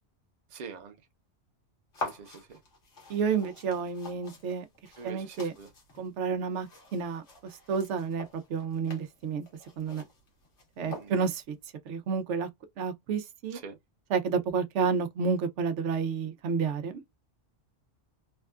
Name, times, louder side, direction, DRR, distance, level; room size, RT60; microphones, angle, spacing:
voice 1, 0.5-1.0 2.0-2.6 5.0-5.7 10.8-11.3 13.5-13.8, right 6 dB, 45° right, 0.7 m, -44 dB
sound 1, 1.9-11.5, left 2 dB, 90° left, 1.5 m, -45 dB
voice 2, 3.1-4.6 5.0-5.5 6.0-7.2 7.7-9.5 9.8-10.0 10.8-11.6 11.9-12.5 12.8-13.6 14.1-17.0, right 5 dB, 90° right, 0.9 m, -30 dB
3.5 x 2.3 x 2.2 m
omnidirectional pair, 1.2 m